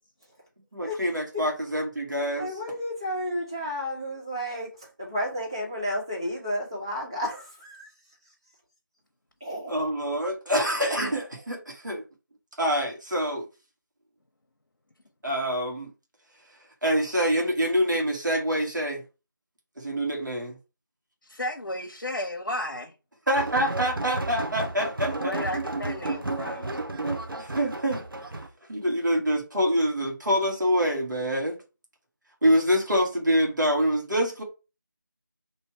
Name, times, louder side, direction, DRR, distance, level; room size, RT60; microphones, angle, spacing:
voice 1, 0.7-2.5 9.7-12.0 12.6-13.5 15.2-15.9 16.5-19.0 19.8-20.6 23.3-25.3 27.0-28.4 28.7-31.6 32.4-34.4, equal, 60° right, 1.3 m, -26 dB
voice 2, 2.3-7.9 9.4-9.7, equal, 15° right, 0.6 m, -32 dB
voice 3, 21.2-22.9 25.2-26.8, left 1 dB, 75° left, 0.8 m, -33 dB
sound 1, 23.4-28.5, right 2 dB, 85° right, 0.8 m, -32 dB
3.2 x 2.7 x 4.5 m
figure-of-eight pair, 170°, 11 cm